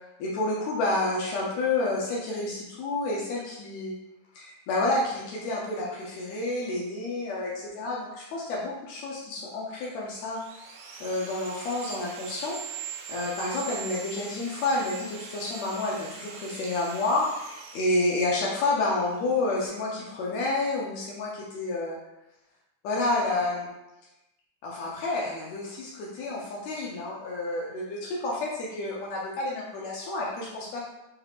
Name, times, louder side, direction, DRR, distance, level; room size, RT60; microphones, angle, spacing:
voice 1, 0.2-3.9 4.3-10.4 11.0-22.0 22.8-23.7 24.6-30.9, left 2 dB, 85° left, -4 dB, 1.5 m, -29 dB
Sawing, 9.8-19.7, right 6 dB, 85° right, 2.4 m, -42 dB
5.7 x 2.4 x 3.3 m, 0.94 s
omnidirectional pair, 4.0 m